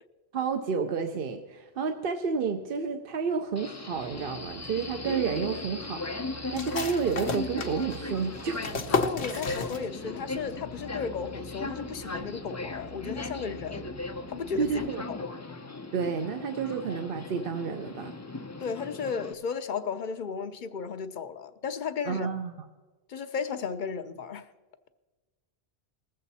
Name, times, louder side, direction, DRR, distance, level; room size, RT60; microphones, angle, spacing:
voice 1, 0.3-8.7 9.3-9.4 14.6-15.0 15.9-18.1 22.1-22.5, right 5 dB, 60° right, 0.9 m, -31 dB
Subway metro underground, 3.6-19.3, left 2 dB, 25° left, 0.4 m, -38 dB
sound 1, 3.9-14.9, right 4 dB, 30° right, 0.5 m, -49 dB
sound 2, 6.5-10.2 10.5-10.6 11.0-11.5, left 4 dB, 85° left, 1.1 m, -33 dB
voice 2, 8.9-13.9 14.3-14.7 15.1-15.3 18.6-22.3 23.1-24.5, left 6 dB, 55° left, 0.7 m, -34 dB
20.0 x 7.7 x 4.1 m
omnidirectional pair, 1.1 m